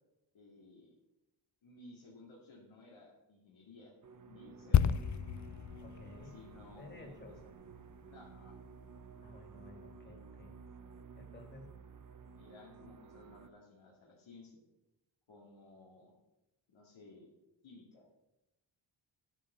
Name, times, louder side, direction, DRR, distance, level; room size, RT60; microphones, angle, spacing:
voice 1, 0.3-0.9 1.6-3.9 4.2-4.8 6.2-7.4 8.0-8.6 12.4-14.6 15.3-16.1 16.7-17.3 17.6-18.1, left 2 dB, 85° left, -3 dB, 2.4 m, -57 dB
sound 1, 4.0-13.5, right 5 dB, 45° right, 0.8 m, -54 dB
sound 2, 4.7-8.4 8.6-8.8, left 9 dB, 40° left, 0.5 m, -33 dB
voice 2, 5.8-6.4 6.8-7.4 9.2-10.5 11.2-11.7, left 2 dB, 25° left, 2 dB, 2.4 m, -53 dB
9.9 x 8.8 x 6.7 m, 0.93 s
wide cardioid pair, 115°, 46 cm